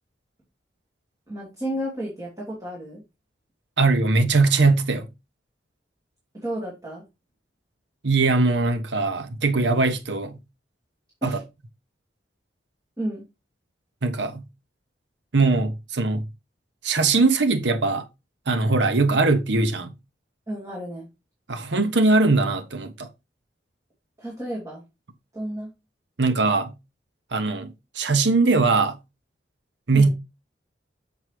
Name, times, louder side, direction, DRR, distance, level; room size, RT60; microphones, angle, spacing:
voice 1, 1.3-3.0 6.3-7.0 11.2-11.4 13.0-13.2 20.5-21.1 24.2-24.8 25.3-25.7 29.9-30.1, right 1 dB, 20° right, 2.6 m, -32 dB
voice 2, 3.8-5.1 8.0-10.4 11.2-11.4 14.0-14.4 15.3-16.2 16.8-18.1 18.5-19.9 21.5-23.1 26.2-26.7 27.3-29.0 29.9-30.1, right 3 dB, 75° right, 0.9 m, -21 dB
7.3 x 6.1 x 3.2 m
head